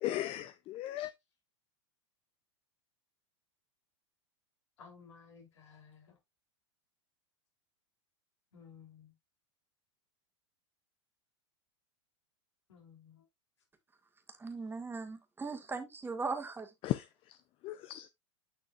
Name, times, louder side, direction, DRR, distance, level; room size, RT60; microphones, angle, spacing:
voice 1, 0.0-1.1 16.8-18.1, left 14 dB, 35° left, 0.5 m, -37 dB
voice 2, 4.8-6.1 8.5-9.1 12.7-13.2, left 6 dB, 75° left, 3.2 m, -56 dB
voice 3, 14.3-16.7, right 4 dB, 15° right, 1.8 m, -39 dB
9.6 x 6.1 x 2.4 m
hypercardioid pair, 95°, 15 cm